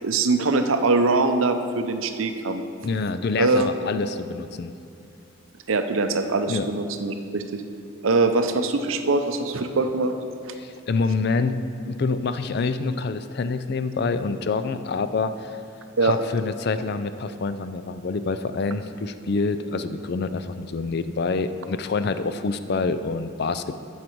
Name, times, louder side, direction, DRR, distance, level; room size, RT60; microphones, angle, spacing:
voice 1, 0.0-2.6 3.4-3.7 5.7-7.6 8.0-10.1 10.4-10.5 16.0-16.2, right 3 dB, 75° right, 7 dB, 0.6 m, -22 dB
voice 2, 2.8-4.7 6.5-6.7 10.6-11.6 11.8-15.6 16.0-23.7, left 4 dB, 50° left, 11 dB, 0.4 m, -26 dB
11.5 x 7.3 x 4.6 m, 2.5 s
head